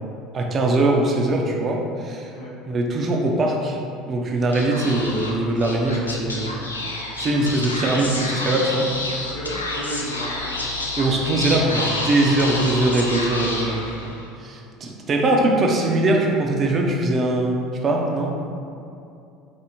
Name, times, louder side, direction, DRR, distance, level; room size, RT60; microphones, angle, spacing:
voice 1, 0.3-2.3 2.7-3.8 4.1-6.7 7.2-8.9 11.0-14.0 14.4-18.3, right 2 dB, 35° right, 0 dB, 0.5 m, -21 dB
Speech / Whispering, 4.5-14.3, left 2 dB, 90° left, 0.3 m, -29 dB
voice 2, 9.2-10.4, equal, 65° left, -6 dB, 0.8 m, -33 dB
3.3 x 2.6 x 2.8 m, 2.5 s
figure-of-eight pair, 65°, 0 cm